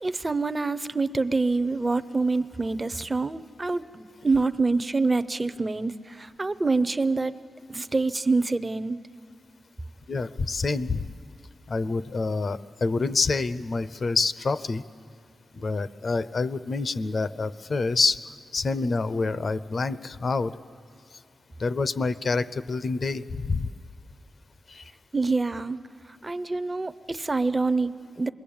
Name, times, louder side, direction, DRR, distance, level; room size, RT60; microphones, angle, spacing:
voice 1, 0.0-7.3 7.7-9.0 25.1-25.8 26.2-28.3, right 3 dB, 20° right, 12 dB, 0.6 m, -26 dB
voice 2, 10.1-11.0 11.7-14.8 15.5-18.2 18.5-20.6 21.6-23.7 24.7-24.8, left 4 dB, 45° left, 14 dB, 0.6 m, -27 dB
27.5 x 21.5 x 8.6 m, 2.2 s
wide cardioid pair, 155°, 0 cm